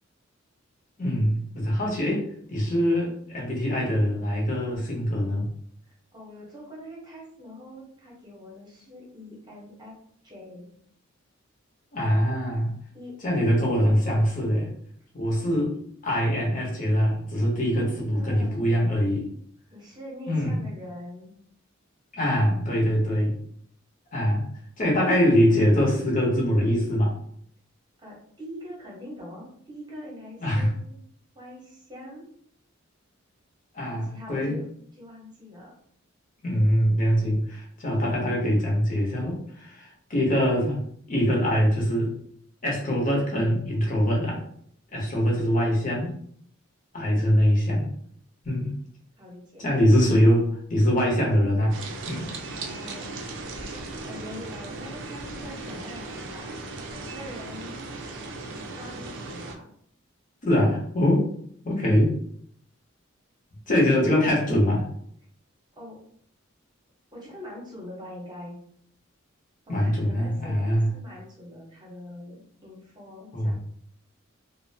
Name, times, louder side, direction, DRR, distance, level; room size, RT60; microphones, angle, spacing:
voice 1, 1.0-5.5 11.9-12.7 13.2-14.7 15.1-15.7 16.0-19.3 20.3-20.6 22.1-23.4 24.1-24.5 24.8-27.1 30.4-30.7 33.7-34.6 36.4-40.8 41.1-42.1 42.6-44.4 44.9-46.2 46.9-47.9 48.4-48.7 49.6-51.8 52.0-52.3 60.4-61.3 61.6-62.1 63.7-64.9 69.7-70.9 73.3-73.6, equal, 40° left, -2 dB, 0.8 m, -23 dB
voice 2, 6.1-10.0 10.2-10.7 12.9-13.5 17.7-18.8 19.7-21.3 28.0-31.0 31.3-32.3 33.9-34.7 35.0-35.7 49.2-49.7 52.5-53.1 53.6-56.5 56.9-57.8 58.6-59.7 65.8-66.0 67.1-68.6 69.7-73.6, left 1 dB, 20° right, -3 dB, 0.9 m, -43 dB
sound 1, 51.7-59.6, right 3 dB, 65° right, 0.4 m, -37 dB
2.5 x 2.1 x 2.6 m, 0.64 s
head